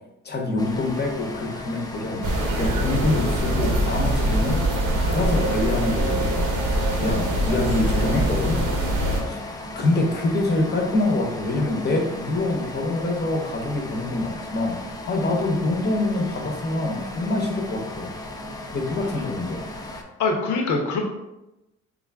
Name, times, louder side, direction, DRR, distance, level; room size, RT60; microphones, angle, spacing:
voice 1, 0.2-2.3 2.5-4.6 5.0-6.5 7.0-8.6 9.3-9.4 9.7-14.8 15.1-18.1 18.7-19.7, left 2 dB, 35° left, 2 dB, 0.9 m, -25 dB
sound 1, 0.6-20.0, left 1 dB, 15° left, 0.5 m, -36 dB
sound 2, 2.2-9.2, right 1 dB, 75° right, 0.9 m, -23 dB
voice 2, 9.0-9.4 19.9-21.0, left 3 dB, 75° left, 2 dB, 0.8 m, -27 dB
3.7 x 2.4 x 3.5 m, 0.96 s
cardioid pair, 90°, 30 cm